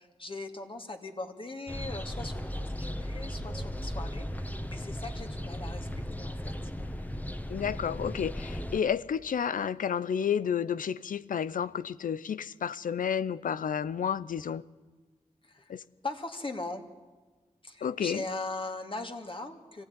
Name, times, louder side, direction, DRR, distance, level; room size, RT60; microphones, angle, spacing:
voice 1, 0.0-4.3 4.7-5.9 6.2-6.7 15.4-15.7 16.0-16.8 17.6-19.8, left 2 dB, 40° left, 2.7 m, -39 dB
sound 1, 1.7-8.8, equal, 10° left, 1.5 m, -36 dB
voice 2, 7.5-14.6 15.7-15.8 17.8-18.2, left 8 dB, 90° left, 0.6 m, -31 dB
25.0 x 15.5 x 9.8 m
cardioid pair, 50°, 14 cm